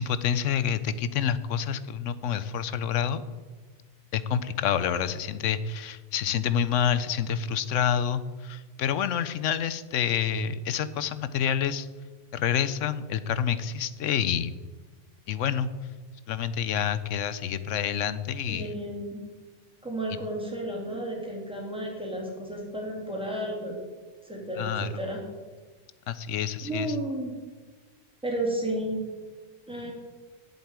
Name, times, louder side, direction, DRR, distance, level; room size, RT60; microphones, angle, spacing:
voice 1, 0.0-3.2 4.1-11.9 12.3-14.5 15.3-15.7 16.3-18.7 24.6-24.9 26.1-26.9, left 8 dB, 90° left, 15 dB, 1.0 m, -28 dB
voice 2, 18.5-19.3 19.8-23.8 24.2-25.2 26.6-27.3 28.2-29.0 29.7-29.9, right 1 dB, 5° right, -2 dB, 2.8 m, -32 dB
8.2 x 8.0 x 8.7 m, 1.4 s
omnidirectional pair, 1.2 m